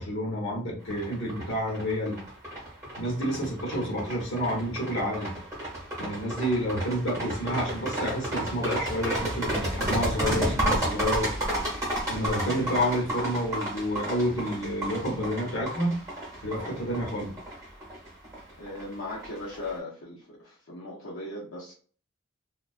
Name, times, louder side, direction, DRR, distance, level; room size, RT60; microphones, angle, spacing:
voice 1, 0.0-2.2 3.0-5.3 6.0-11.3 12.1-15.9 16.4-17.3, equal, 60° left, -2 dB, 1.0 m, -29 dB
sound 1, 0.9-19.7, right 1 dB, 15° right, 1.0 m, -32 dB
voice 2, 18.6-21.7, left 2 dB, 75° left, -6 dB, 0.6 m, -38 dB
2.3 x 2.2 x 2.4 m, 0.43 s
head